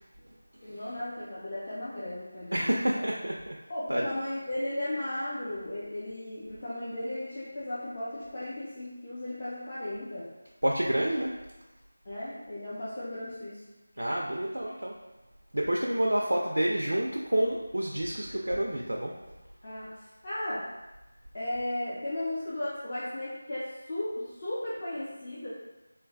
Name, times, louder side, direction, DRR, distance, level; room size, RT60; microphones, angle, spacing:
voice 1, 0.6-2.7 3.7-10.3 12.0-13.6 19.6-20.0 20.2-20.7 21.3-25.5, left 1 dB, 30° left, -10 dB, 0.5 m, -35 dB
voice 2, 2.5-3.5 3.9-4.0 10.6-11.3 14.0-14.9 15.5-19.1, right 1 dB, 65° right, -2 dB, 0.3 m, -28 dB
3.0 x 2.1 x 2.5 m, 1.0 s
figure-of-eight pair, 165°, 0 cm